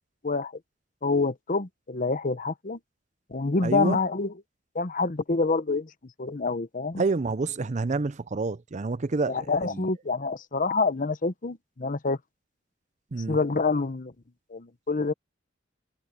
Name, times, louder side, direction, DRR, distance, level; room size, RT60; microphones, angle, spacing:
voice 1, 1.0-2.8 3.3-4.3 4.7-5.9 6.2-7.0 9.3-12.2 13.3-14.1 14.5-15.1, left 3 dB, 45° left, 0.9 m, -27 dB
voice 2, 3.6-4.0 7.0-9.8 13.1-13.4, right 3 dB, 40° right, 0.6 m, -28 dB
head